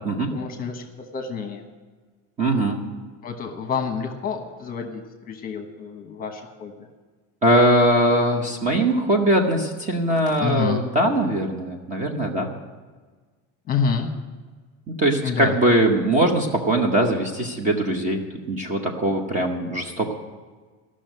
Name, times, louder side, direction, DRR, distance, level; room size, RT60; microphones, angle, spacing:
voice 1, 0.3-0.8 1.1-1.7 3.2-6.7 10.4-10.8 13.7-14.1 15.2-15.6, left 6 dB, 25° left, 4 dB, 1.1 m, -28 dB
voice 2, 2.4-2.8 7.4-12.5 15.0-18.2 18.5-20.1, right 1 dB, 20° right, 3 dB, 0.9 m, -21 dB
14.0 x 6.4 x 9.1 m, 1.4 s
cardioid pair, 180°, 37 cm